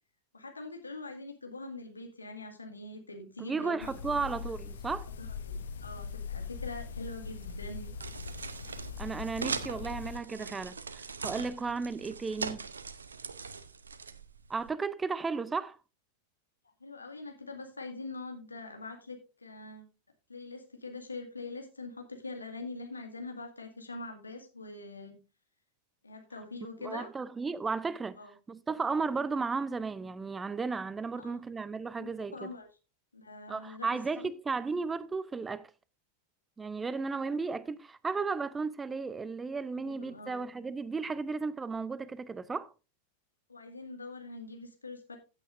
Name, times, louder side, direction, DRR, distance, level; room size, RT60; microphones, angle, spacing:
voice 1, 0.3-4.3 5.2-7.9 16.8-19.9 20.3-25.2 26.0-27.1 28.2-28.3 31.1-31.4 32.0-32.7 33.1-34.3 34.7-34.8 39.8-40.5 43.5-45.2, left 3 dB, 80° left, 2.0 m, -44 dB
voice 2, 3.5-5.1 9.0-12.6 14.5-15.8 26.8-28.2 28.5-32.5 33.5-35.7 36.6-42.7, right 4 dB, 15° right, 0.5 m, -34 dB
sound 1, 3.8-10.2, left 5 dB, 65° left, 1.2 m, -41 dB
sound 2, 6.6-14.7, right 5 dB, 75° right, 0.7 m, -41 dB
15.0 x 8.3 x 2.5 m
figure-of-eight pair, 90°, 0 cm